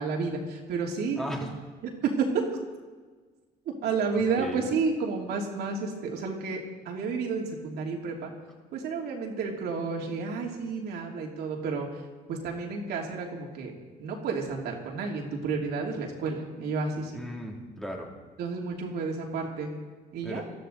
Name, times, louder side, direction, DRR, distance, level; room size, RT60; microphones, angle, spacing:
voice 1, 0.0-1.2 2.0-2.5 3.8-8.3 8.7-11.9 12.3-13.7 14.0-17.2 18.4-19.8 20.1-20.4, right 4 dB, 75° right, 0 dB, 2.9 m, -31 dB
voice 2, 1.2-1.5 4.1-4.7 17.1-18.1 20.2-20.4, equal, 5° left, -1 dB, 2.7 m, -36 dB
19.5 x 13.5 x 4.0 m, 1.4 s
cardioid pair, 110°, 17 cm